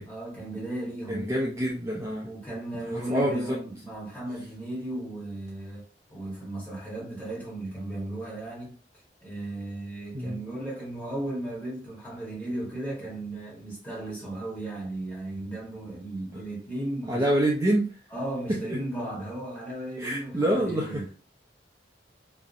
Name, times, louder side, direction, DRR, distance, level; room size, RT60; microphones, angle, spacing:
voice 1, 0.0-1.3 2.2-5.8 6.1-8.8 9.2-17.2 18.1-21.1, right 1 dB, 10° left, 1.0 m, -35 dB
voice 2, 1.1-2.3 2.7-3.6 10.1-10.4 16.3-16.4 17.1-17.9 18.5-18.8 20.0-21.1, right 1 dB, 20° right, 0.4 m, -27 dB
2.7 x 2.0 x 2.4 m
head